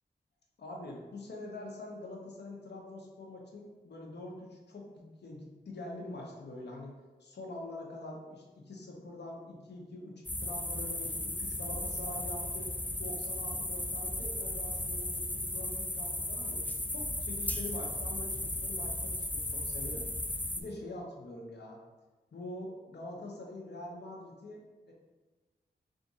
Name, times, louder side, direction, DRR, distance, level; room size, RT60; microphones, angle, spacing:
voice 1, 0.6-6.9 7.2-16.6 16.9-21.8 22.3-24.9, left 1 dB, 75° left, -1 dB, 0.9 m, -45 dB
sound 1, 10.3-20.6, left 1 dB, 10° left, 0.4 m, -35 dB
3.6 x 2.5 x 4.1 m, 1.2 s
wide cardioid pair, 75°, 18 cm